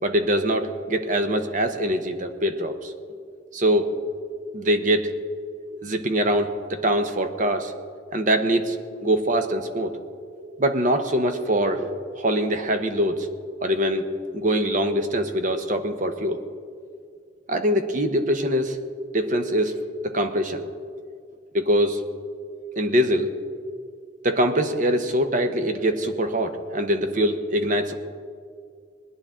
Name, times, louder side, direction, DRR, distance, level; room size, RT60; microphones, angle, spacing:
voice 1, 0.0-2.9 3.5-4.0 4.5-5.1 5.7-7.7 8.1-8.8 9.0-9.9 10.5-13.3 13.6-14.1 14.3-16.4 17.5-18.8 19.1-19.8 20.0-20.7 21.5-22.0 22.8-23.3 24.2-27.9, equal, 40° right, 7 dB, 0.9 m, -23 dB
20.5 x 10.5 x 3.7 m, 2.2 s
head